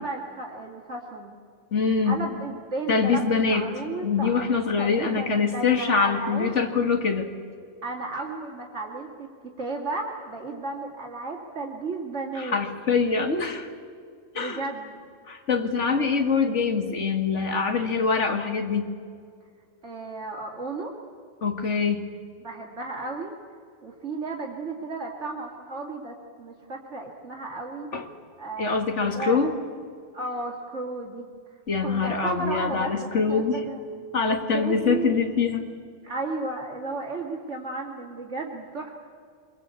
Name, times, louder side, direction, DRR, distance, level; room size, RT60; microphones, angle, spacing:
voice 1, 0.0-1.4 2.0-4.4 4.8-6.5 7.8-9.3 9.6-12.6 14.3-15.0 15.8-16.1 19.8-20.9 22.4-23.3 23.8-27.9 28.4-29.4 30.1-31.3 31.8-33.8 34.5-35.2 36.0-38.9, right 2 dB, 70° right, -1 dB, 2.7 m, -34 dB
voice 2, 1.7-2.2 2.9-3.7 4.0-7.3 12.4-13.7 14.3-14.6 15.3-18.9 21.4-22.1 27.9-28.1 28.6-29.5 31.7-33.6 34.1-35.7, left 5 dB, 75° left, 6 dB, 2.3 m, -24 dB
24.5 x 22.0 x 8.4 m, 2.2 s
omnidirectional pair, 1.2 m